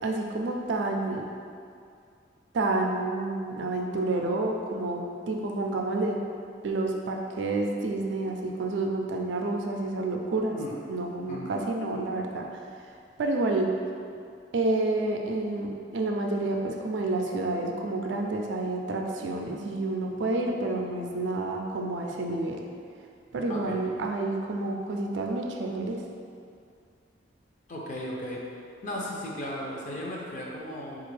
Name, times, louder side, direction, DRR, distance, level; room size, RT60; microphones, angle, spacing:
voice 1, 0.0-1.2 2.5-6.2 6.6-10.6 10.9-12.5 13.2-13.7 14.5-22.6 23.3-26.0, right 2 dB, 75° right, 2 dB, 0.4 m, -29 dB
voice 2, 27.7-28.4 28.8-31.1, equal, 45° left, -3 dB, 0.5 m, -36 dB
4.2 x 2.4 x 3.2 m, 2.3 s
head